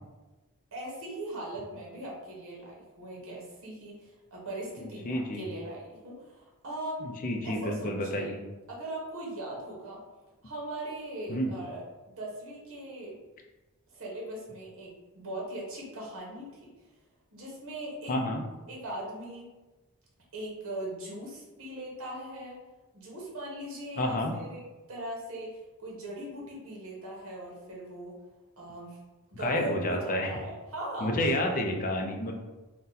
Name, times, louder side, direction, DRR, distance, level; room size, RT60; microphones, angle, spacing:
voice 1, 0.7-7.1 7.4-8.3 8.7-10.0 10.4-13.2 13.9-16.7 17.3-18.3 18.7-19.5 20.3-22.6 22.9-28.1 28.6-29.0 29.3-31.3, right 1 dB, 65° right, -4 dB, 1.0 m, -40 dB
voice 2, 5.0-5.5 7.0-8.4 11.3-11.5 18.1-18.4 24.0-24.3 29.4-30.4 31.0-32.3, left 1 dB, 40° left, 2 dB, 0.4 m, -29 dB
2.7 x 2.2 x 3.8 m, 1.1 s
head